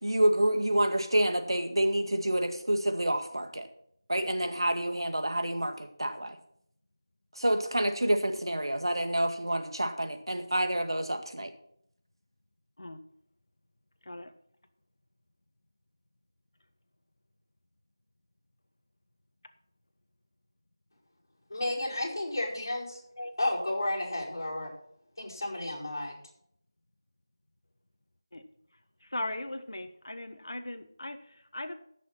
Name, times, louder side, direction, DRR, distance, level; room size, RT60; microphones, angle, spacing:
voice 1, 0.0-3.7 4.1-6.4 7.4-11.5, right 1 dB, 90° right, 7 dB, 1.9 m, -28 dB
voice 2, 21.5-23.0 23.4-24.7 25.2-26.2, left 1 dB, 50° left, -3 dB, 4.8 m, -32 dB
voice 3, 29.0-31.7, left 1 dB, 75° left, 8 dB, 1.4 m, -38 dB
14.0 x 6.3 x 5.9 m, 0.70 s
figure-of-eight pair, 175°, 2 cm